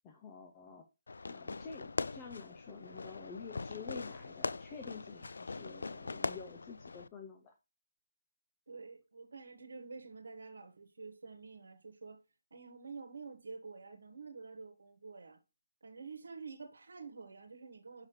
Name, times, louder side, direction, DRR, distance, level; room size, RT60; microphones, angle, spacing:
voice 1, 0.0-0.9 1.3-7.5, left 5 dB, 10° left, 0.4 m, -49 dB
Fireworks, 1.1-7.1, left 3 dB, 75° left, 0.3 m, -41 dB
voice 2, 8.7-12.2 12.5-15.4 15.8-18.1, right 4 dB, 70° right, 1.2 m, -49 dB
6.4 x 5.7 x 2.9 m
hypercardioid pair, 180°, 0 cm